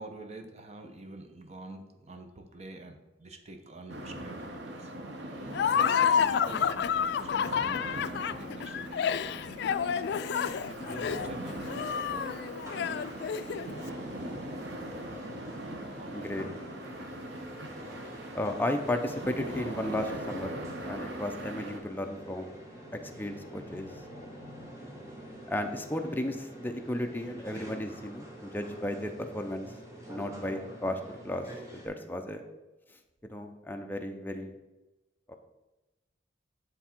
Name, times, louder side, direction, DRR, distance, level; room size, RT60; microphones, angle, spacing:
voice 1, 0.0-4.9 5.7-10.0 10.7-12.3 16.0-16.6, right 2 dB, 40° right, 5 dB, 0.8 m, -47 dB
sound 1, 3.9-21.8, right 1 dB, 70° right, 0.9 m, -41 dB
Laughter, 5.5-13.8, left 7 dB, 65° left, 0.3 m, -29 dB
sound 2, 12.6-31.9, equal, 15° right, 1.3 m, -47 dB
voice 2, 16.1-16.4 18.3-20.5 20.9-22.5 23.2-23.9 25.5-29.7 30.1-31.4 31.7-32.4 33.3-34.6 35.3-35.4, left 1 dB, 10° left, 5 dB, 0.6 m, -34 dB
9.4 x 3.5 x 4.4 m, 1.1 s
head